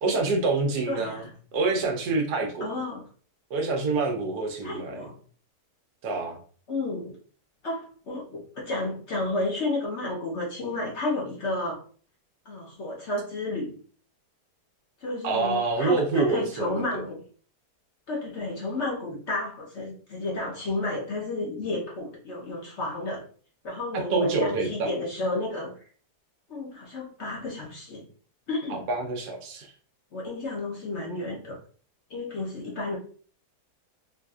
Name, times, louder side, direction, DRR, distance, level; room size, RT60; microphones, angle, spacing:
voice 1, 0.0-1.2 1.5-2.7 3.5-5.0 6.0-6.4 15.2-17.0 23.9-24.9 28.7-29.7, right 3 dB, 80° right, 2 dB, 1.4 m, -26 dB
voice 2, 0.9-1.3 2.6-3.1 4.6-5.1 6.7-7.2 7.6-11.8 12.5-13.7 15.0-17.2 18.1-23.2 23.6-25.7 26.5-28.1 28.5-28.9 30.1-31.6 32.1-33.0, left 2 dB, 50° left, -2 dB, 1.1 m, -32 dB
4.1 x 2.5 x 2.3 m, 0.44 s
omnidirectional pair, 1.7 m